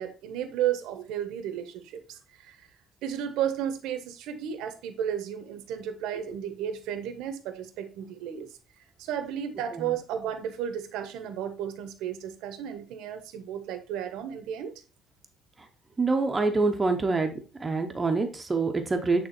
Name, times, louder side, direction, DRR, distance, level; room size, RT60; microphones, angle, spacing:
voice 1, 0.0-2.6 3.0-8.5 9.0-14.7, right 9 dB, 90° right, 1.2 m, -33 dB
voice 2, 16.0-17.3 17.6-19.3, right 3 dB, 15° right, 0.8 m, -25 dB
8.7 x 3.6 x 4.3 m
cardioid pair, 160°, 0 cm